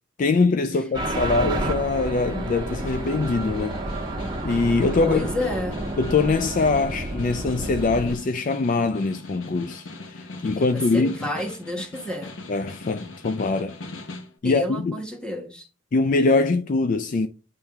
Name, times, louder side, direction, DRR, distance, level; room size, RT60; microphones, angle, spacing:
voice 1, 0.2-3.8 4.4-5.3 6.0-11.3 12.5-13.8 14.4-15.0 15.9-17.3, left 3 dB, 40° left, 0.3 m, -23 dB
sound 1, 0.9-8.2, right 1 dB, 20° right, 1.3 m, -30 dB
Snare drum, 2.6-14.4, left 2 dB, 70° left, 1.0 m, -40 dB
voice 2, 5.0-5.8 10.6-12.3 14.4-15.7, left 1 dB, 5° left, 1.0 m, -30 dB
8.7 x 3.4 x 3.4 m
head